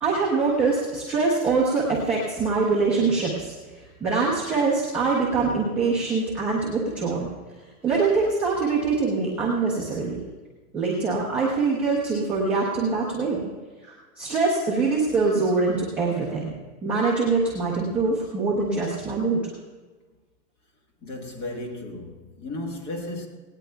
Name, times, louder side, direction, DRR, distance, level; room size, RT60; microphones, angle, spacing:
voice 1, 0.0-7.3 7.8-10.2 10.7-13.5 13.9-16.5 16.8-19.4, right 4 dB, 5° right, 0.6 m, -24 dB
voice 2, 21.0-23.3, left 2 dB, 20° left, 1.4 m, -34 dB
18.5 x 18.0 x 2.3 m
supercardioid pair, 170°, 48 cm